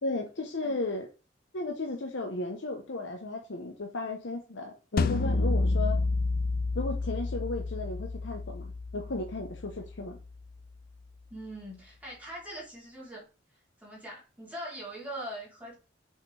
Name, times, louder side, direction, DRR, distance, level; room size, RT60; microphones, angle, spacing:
voice 1, 0.0-1.1 1.5-6.0 6.7-10.2, left 2 dB, 70° left, 0.9 m, -35 dB
sound 1, 5.0-10.1, left 3 dB, 50° left, 0.4 m, -29 dB
voice 2, 11.3-13.2 13.8-15.7, right 1 dB, 10° right, 3.1 m, -42 dB
5.7 x 5.6 x 3.3 m
head